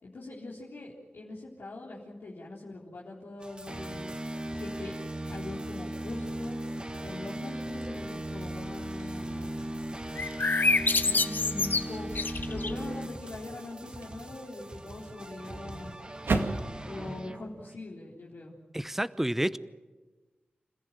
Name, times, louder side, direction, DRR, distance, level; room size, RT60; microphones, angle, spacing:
voice 1, 0.0-4.1 4.5-5.0 5.3-6.6 7.0-9.6 10.9-12.1 12.5-15.9 16.8-18.6, left 2 dB, 85° left, -5 dB, 3.7 m, -42 dB
sound 1, 3.4-17.8, right 1 dB, 25° right, 1.9 m, -38 dB
sound 2, 7.8-8.1 8.7-16.7, right 3 dB, 85° right, 2.1 m, -39 dB
sound 3, 10.2-12.9, left 3 dB, 60° left, 1.2 m, -27 dB
voice 2, 18.7-19.6, right 1 dB, 10° right, 15 dB, 0.8 m, -29 dB
28.5 x 15.0 x 9.1 m, 1.3 s
cardioid pair, 50°, 4 cm